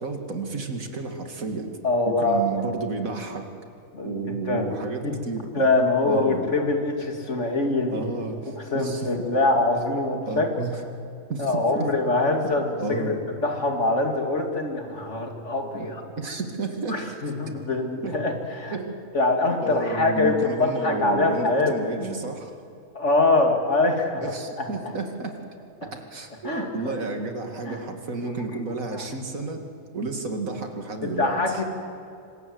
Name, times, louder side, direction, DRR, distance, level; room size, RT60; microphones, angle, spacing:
voice 1, 0.0-1.7 2.1-3.5 4.0-5.6 6.0-6.5 7.9-9.1 10.3-10.7 11.3-11.9 12.8-13.2 15.7-15.9 16.2-17.1 18.0-18.2 18.7-19.0 19.6-22.6 24.2-25.3 25.8-29.7 29.9-31.6, right 3 dB, 85° right, 4 dB, 2.7 m, -31 dB
voice 2, 1.8-2.6 3.9-4.7 5.0-5.1 5.5-8.0 8.6-10.5 11.4-16.0 16.9-18.8 19.1-21.7 22.9-24.2 24.6-24.7 26.4-27.0 27.7-27.8 28.2-28.6 28.9-29.0 31.0-31.6, left 2 dB, 60° left, 3 dB, 3.0 m, -24 dB
27.0 x 25.5 x 8.0 m, 2.5 s
omnidirectional pair, 1.4 m